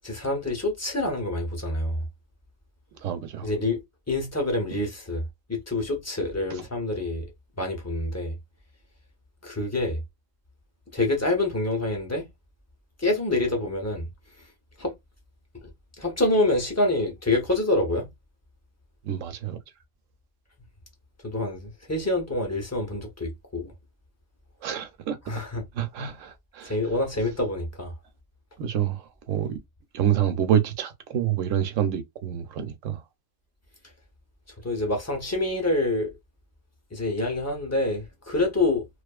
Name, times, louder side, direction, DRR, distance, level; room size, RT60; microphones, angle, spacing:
voice 1, 0.0-2.0 3.4-3.8 4.1-5.2 5.5-7.3 7.6-8.4 9.4-10.0 10.9-12.3 13.0-14.1 14.8-14.9 15.6-15.7 16.0-18.1 21.2-23.7 25.3-25.7 26.6-27.9 34.6-36.1 36.9-38.9, left 2 dB, 15° left, 0.6 m, -26 dB
voice 2, 3.0-3.5 19.0-19.6 24.6-25.2 25.8-26.7 28.6-29.6 29.9-33.0, right 10 dB, 80° right, 1.0 m, -27 dB
2.6 x 2.4 x 2.3 m
omnidirectional pair, 1.3 m